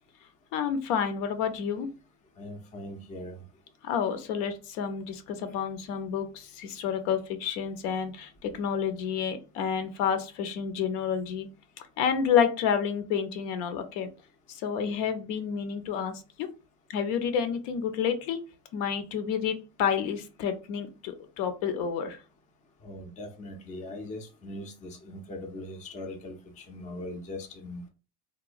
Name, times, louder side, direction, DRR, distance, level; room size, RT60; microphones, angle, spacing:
voice 1, 0.5-1.9 3.8-11.5 12.0-14.1 14.5-16.5 16.9-18.4 18.7-22.2, left 7 dB, 65° left, 0.6 m, -29 dB
voice 2, 2.4-3.4 22.8-26.3 26.7-27.8, left 1 dB, 15° left, 0.4 m, -40 dB
2.9 x 2.1 x 2.4 m
supercardioid pair, 115°, 45 cm